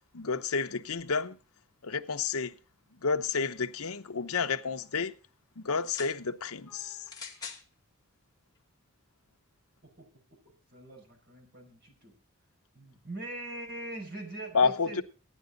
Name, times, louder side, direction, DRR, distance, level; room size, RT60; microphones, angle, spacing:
voice 1, 0.1-1.4 1.8-2.5 3.0-5.1 5.6-7.0 14.5-15.0, left 5 dB, 75° left, 0.9 m, -30 dB
sound 1, 5.7-6.2 7.1-7.7 8.6-8.7, left 5 dB, 15° left, 1.6 m, -43 dB
voice 2, 9.8-10.4 10.7-12.1 12.7-15.0, right 1 dB, 50° right, 5.6 m, -42 dB
15.5 x 11.0 x 3.9 m
head